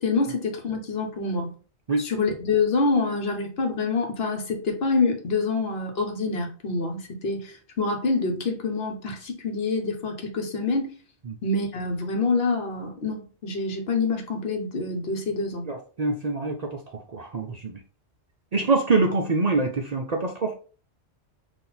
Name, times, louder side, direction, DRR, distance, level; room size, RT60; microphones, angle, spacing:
voice 1, 0.0-1.5 2.0-10.9 11.4-15.6, left 3 dB, 60° left, 1.2 m, -26 dB
voice 2, 15.7-16.8 17.1-17.8 18.5-20.5, right 3 dB, 50° right, 0.5 m, -25 dB
4.2 x 2.7 x 3.9 m
omnidirectional pair, 1.2 m